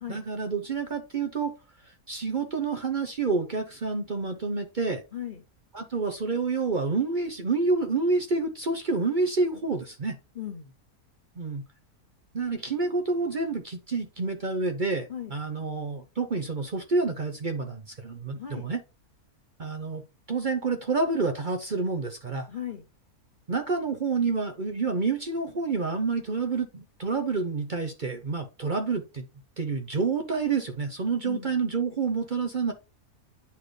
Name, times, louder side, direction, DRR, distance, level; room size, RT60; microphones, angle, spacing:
voice 1, 0.1-1.5 2.1-5.0 5.7-10.2 11.4-11.6 12.3-18.8 19.6-20.0 20.3-22.5 23.5-29.2 29.6-32.7, right 4 dB, 40° right, 0.8 m, -28 dB
voice 2, 5.1-5.4 10.3-10.7 15.1-15.4 18.3-18.7 22.5-22.8 31.2-31.6, left 10 dB, 50° left, 0.7 m, -37 dB
9.5 x 4.2 x 3.2 m
omnidirectional pair, 1.6 m